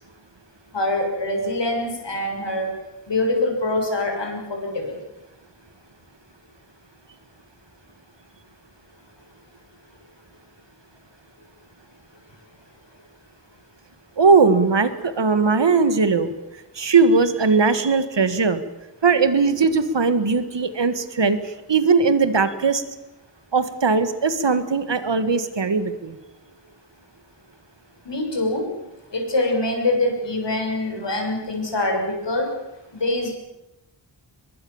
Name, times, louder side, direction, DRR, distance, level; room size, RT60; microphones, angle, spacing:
voice 1, 0.7-2.7 3.1-4.9 28.1-28.6 29.1-32.5 32.9-33.3, left 2 dB, 70° left, 2 dB, 6.5 m, -24 dB
voice 2, 14.2-16.3 16.7-18.6 19.0-22.8 23.5-26.2, right 4 dB, 70° right, 12 dB, 2.0 m, -19 dB
23.5 x 22.0 x 7.3 m, 0.96 s
wide cardioid pair, 75°, 44 cm